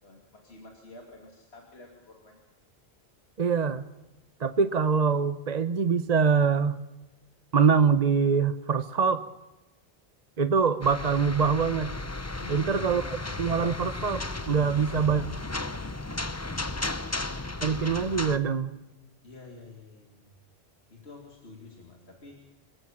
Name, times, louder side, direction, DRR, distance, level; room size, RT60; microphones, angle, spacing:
voice 1, 0.0-2.4 12.4-13.6 17.6-18.0 19.2-20.3 20.9-22.4, left 2 dB, 75° left, 1 dB, 3.1 m, -48 dB
voice 2, 3.4-3.9 4.4-6.8 7.5-9.2 10.4-11.9 12.5-13.0 13.4-15.2 17.6-18.7, right 5 dB, 40° right, 12 dB, 0.9 m, -24 dB
sound 1, 10.8-18.4, left 2 dB, 15° left, 0.8 m, -34 dB
26.5 x 16.0 x 7.4 m, 1.1 s
omnidirectional pair, 1.1 m